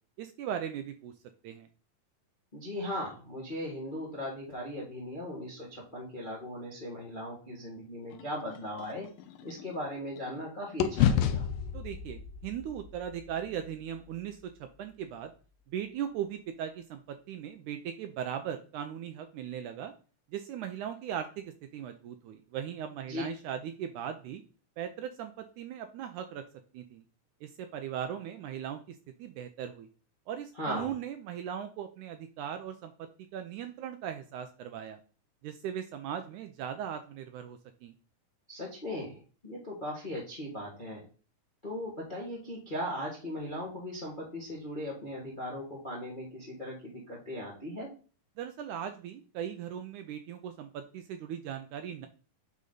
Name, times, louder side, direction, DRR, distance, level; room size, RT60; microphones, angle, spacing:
voice 1, 0.2-1.1 1.4-1.7 11.7-14.4 14.8-15.3 15.7-19.9 20.3-24.4 24.8-26.4 26.7-27.0 27.4-29.9 30.3-35.0 35.4-37.9 48.4-52.1, right 9 dB, 80° right, 7 dB, 1.9 m, -38 dB
voice 2, 2.5-9.1 9.4-11.5 23.1-23.2 30.5-30.9 38.5-41.0 41.6-47.9, left 1 dB, 30° left, -3 dB, 0.9 m, -38 dB
sound 1, 8.1-10.4 10.8-15.0, left 9 dB, 85° left, 2.3 m, -32 dB
8.4 x 4.1 x 3.9 m, 0.37 s
omnidirectional pair, 3.9 m